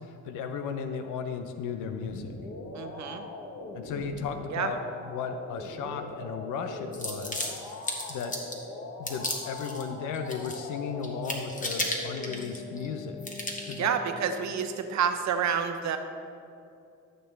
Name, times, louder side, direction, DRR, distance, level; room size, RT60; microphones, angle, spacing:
voice 1, 0.0-2.4 3.7-4.8 5.1-7.5 8.1-8.3 9.0-13.2 13.6-13.9, left 6 dB, 90° left, 7 dB, 0.7 m, -35 dB
sound 1, 1.8-14.6, left 2 dB, 70° left, 1.3 m, -41 dB
voice 2, 2.7-3.2 4.5-4.7 13.8-16.0, right 7 dB, 65° right, 7 dB, 0.9 m, -29 dB
sound 2, 6.9-8.6 9.1-9.8 10.1-10.8 11.0-12.9 13.2-13.8, left 2 dB, 25° left, 1.5 m, -34 dB
13.5 x 6.7 x 3.3 m, 2.5 s
cardioid pair, 90°, 30 cm